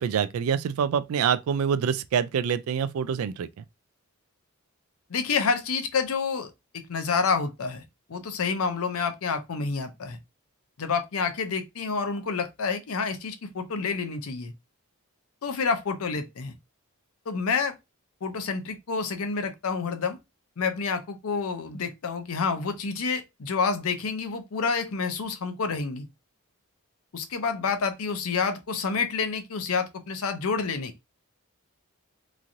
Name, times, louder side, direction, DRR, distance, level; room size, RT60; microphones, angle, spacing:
voice 1, 0.0-3.5, right 7 dB, 75° right, 0.3 m, -26 dB
voice 2, 5.1-6.5 6.9-7.8 8.1-10.2 10.8-14.5 15.4-16.6 17.3-17.7 18.2-20.2 20.6-26.1 27.1-30.9, left 5 dB, 75° left, 0.6 m, -28 dB
3.0 x 2.5 x 2.6 m
head